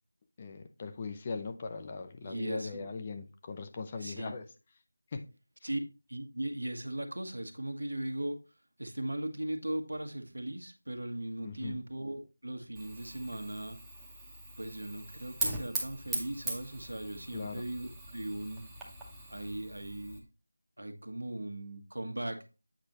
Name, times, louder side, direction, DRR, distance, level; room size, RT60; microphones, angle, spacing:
voice 1, 0.4-4.5 5.1-5.2 11.4-11.8 17.3-17.6, left 4 dB, 20° left, 0.4 m, -40 dB
voice 2, 2.2-2.9 4.0-4.4 5.6-5.8 6.1-8.4 8.8-13.8 14.6-18.6 19.3-20.2 20.8-22.4, right 1 dB, 80° right, 1.3 m, -38 dB
Fire, 12.8-20.2, right 2 dB, 5° right, 0.8 m, -40 dB
8.1 x 5.3 x 2.9 m
figure-of-eight pair, 170°, 0 cm